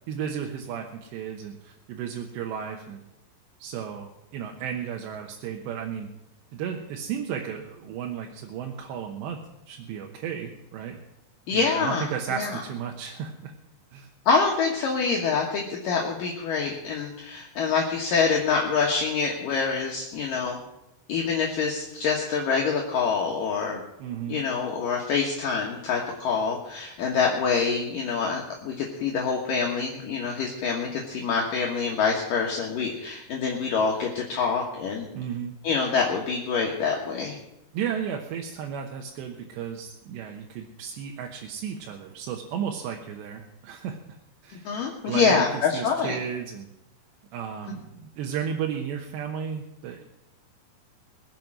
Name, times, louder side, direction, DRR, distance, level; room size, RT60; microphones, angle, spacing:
voice 1, 0.1-3.0 3.6-6.1 6.5-9.4 9.7-11.0 11.5-13.5 13.9-14.1 24.0-24.4 35.1-35.5 37.7-44.0 44.4-44.7 45.0-45.5 45.7-46.7 47.3-50.1, right 8 dB, 85° right, 1 dB, 3.2 m, -34 dB
voice 2, 11.5-12.6 14.3-20.6 21.1-23.8 24.3-35.1 35.6-37.3 44.7-46.2, left 5 dB, 60° left, -1 dB, 2.7 m, -26 dB
21.0 x 7.7 x 6.1 m, 0.90 s
omnidirectional pair, 4.9 m